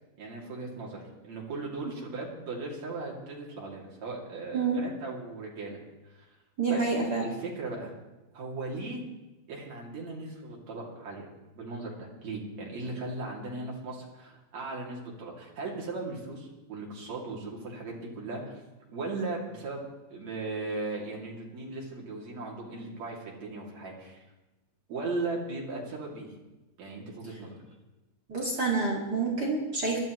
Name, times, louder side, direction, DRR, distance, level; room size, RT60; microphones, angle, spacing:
voice 1, 0.2-5.8 6.0-6.3 6.7-6.9 7.2-7.9 8.3-9.0 9.5-11.3 11.6-18.6 18.9-24.2 24.9-26.3 26.8-27.6, right 3 dB, 65° right, -2 dB, 3.9 m, -37 dB
voice 2, 6.6-7.3 28.3-30.0, right 4 dB, 35° right, -3 dB, 2.4 m, -28 dB
21.5 x 12.5 x 3.1 m, 1.1 s
omnidirectional pair, 3.3 m